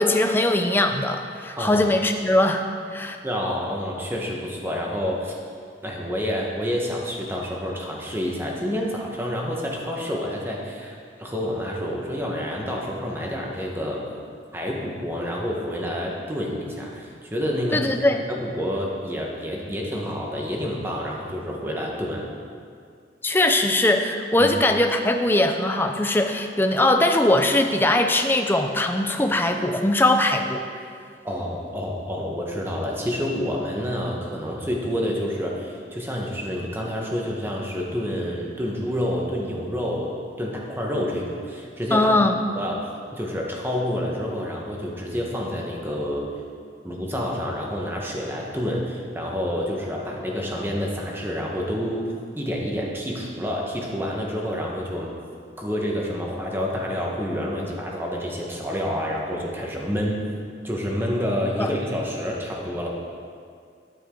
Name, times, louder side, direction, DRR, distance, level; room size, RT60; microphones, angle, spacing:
voice 1, 0.0-2.6 2.9-3.2 17.7-18.2 23.2-30.7 41.9-42.4 61.6-61.7, left 1 dB, 10° left, 5 dB, 0.6 m, -21 dB
voice 2, 3.2-5.3 5.8-14.0 14.5-18.0 18.3-22.3 24.4-24.5 31.2-40.1 40.4-42.1 42.5-42.8 43.1-46.3 46.8-55.1 55.6-60.2 60.6-62.9, equal, 15° right, -2 dB, 1.4 m, -28 dB
12.5 x 9.3 x 3.9 m, 2.2 s
head